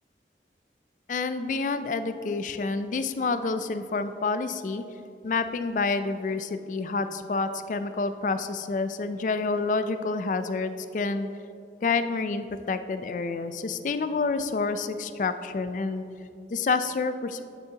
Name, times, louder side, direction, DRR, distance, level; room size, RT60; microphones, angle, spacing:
voice 1, 1.1-4.8 5.2-11.3 11.8-16.1 16.5-17.4, left 4 dB, 45° left, 11 dB, 0.3 m, -28 dB
9.3 x 8.1 x 2.9 m, 2.6 s
head